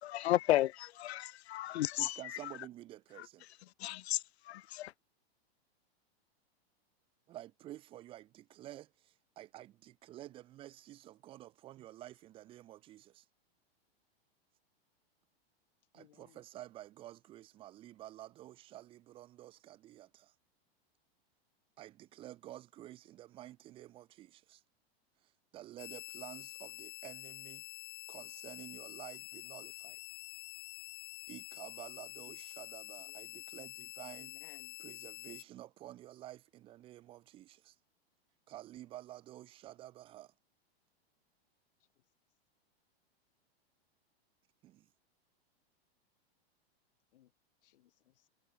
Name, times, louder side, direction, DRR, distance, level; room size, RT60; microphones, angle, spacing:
voice 1, 0.0-2.5 3.2-3.3 3.8-4.9, left 14 dB, 90° left, 0.7 m, -33 dB
voice 2, 2.0-3.5 7.3-13.2 15.9-20.3 21.8-24.6 25.5-27.6 28.1-30.0 31.3-34.3 34.8-37.8 38.5-40.3 44.6-44.9, right 14 dB, 15° right, 1.0 m, -51 dB
voice 3, 15.9-16.4 33.1-33.2 34.1-34.8 47.1-47.3 47.6-48.3, left 14 dB, 60° left, 2.4 m, -62 dB
sound 1, 25.8-35.4, left 39 dB, 30° left, 2.4 m, -48 dB
supercardioid pair, 175°, 31 cm